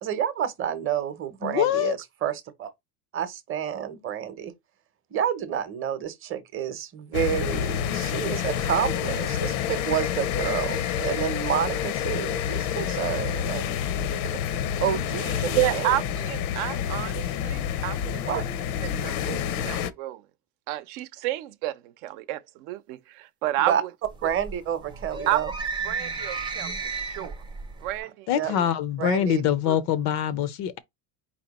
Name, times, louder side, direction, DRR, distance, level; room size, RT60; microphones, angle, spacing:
voice 1, 0.0-2.7 3.1-4.5 5.1-13.7 14.8-15.9 18.3-18.4 23.6-23.8 24.2-25.5 28.3-28.5 29.0-29.4, right 9 dB, 30° right, 0.8 m, -29 dB
voice 2, 1.4-1.9 28.3-30.8, left 10 dB, 45° left, 0.4 m, -24 dB
sound 1, 7.1-19.9, left 9 dB, 75° left, 0.7 m, -28 dB
voice 3, 15.6-18.4 18.8-20.2 20.7-23.9 24.2-24.3 25.3-25.4 25.8-27.3 27.8-28.7 29.7-29.8, right 14 dB, 70° right, 0.7 m, -30 dB
sound 2, 24.0-28.0, right 4 dB, 10° right, 0.4 m, -34 dB
4.4 x 2.8 x 4.1 m
cardioid pair, 150°, 44 cm